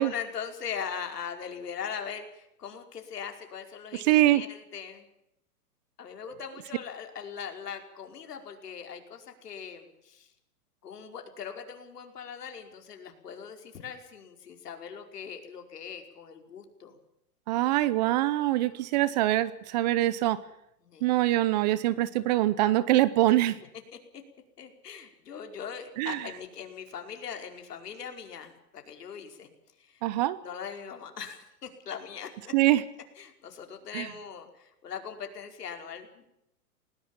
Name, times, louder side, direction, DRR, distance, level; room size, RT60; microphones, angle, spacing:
voice 1, 0.0-5.1 6.0-10.3 10.8-17.0 18.4-18.7 20.8-21.1 24.1-24.2 24.6-29.5 29.8-30.0 30.4-32.5 33.2-36.3, left 7 dB, 80° left, 5 dB, 5.2 m, -40 dB
voice 2, 4.1-4.4 17.5-20.4 21.0-23.6 26.0-26.2 30.0-30.4 32.5-32.8 33.9-34.1, right 15 dB, 25° right, 18 dB, 0.8 m, -24 dB
20.0 x 19.5 x 7.5 m, 0.82 s
hypercardioid pair, 150°, 47 cm